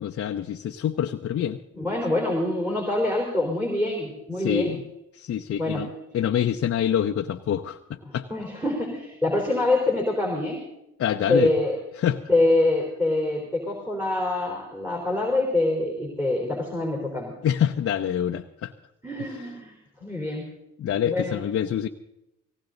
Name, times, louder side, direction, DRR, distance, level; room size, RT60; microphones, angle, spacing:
voice 1, 0.0-1.6 4.4-4.8 5.1-8.3 11.0-11.5 12.0-12.2 17.4-18.7 20.8-21.9, left 9 dB, 50° left, 5 dB, 0.7 m, -26 dB
voice 2, 1.7-4.8 5.6-5.8 8.1-10.6 11.3-11.8 12.3-17.3 19.0-19.7 20.0-20.5 21.0-21.4, left 2 dB, 5° right, 1 dB, 3.9 m, -25 dB
18.0 x 17.0 x 3.9 m, 0.89 s
cardioid pair, 90°, 30 cm